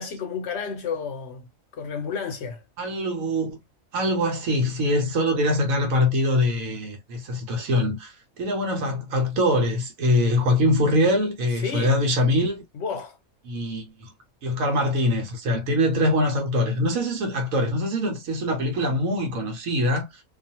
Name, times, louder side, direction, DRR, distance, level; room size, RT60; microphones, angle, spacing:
voice 1, 0.0-2.6 11.6-12.0 12.7-13.2, left 6 dB, 65° left, 0.7 m, -31 dB
voice 2, 2.8-3.6 3.9-12.6 13.4-14.1 14.4-20.1, left 1 dB, 80° right, 1.3 m, -23 dB
2.6 x 2.4 x 2.7 m
omnidirectional pair, 1.4 m